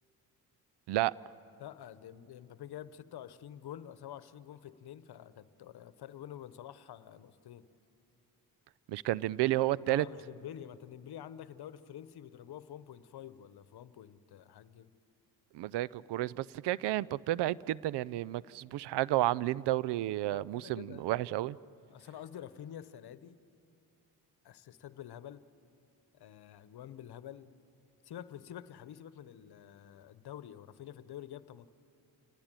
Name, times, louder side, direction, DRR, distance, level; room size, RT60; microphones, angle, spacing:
voice 1, 1.6-7.7 9.9-14.9 20.3-21.1 21.9-23.4 24.4-25.5 26.1-27.5 28.0-31.7, left 10 dB, 70° left, 15 dB, 1.0 m, -48 dB
voice 2, 8.9-10.0 15.5-21.6, right 15 dB, 80° right, 22 dB, 0.6 m, -31 dB
27.5 x 19.0 x 9.0 m, 2.7 s
supercardioid pair, 60°, 40 cm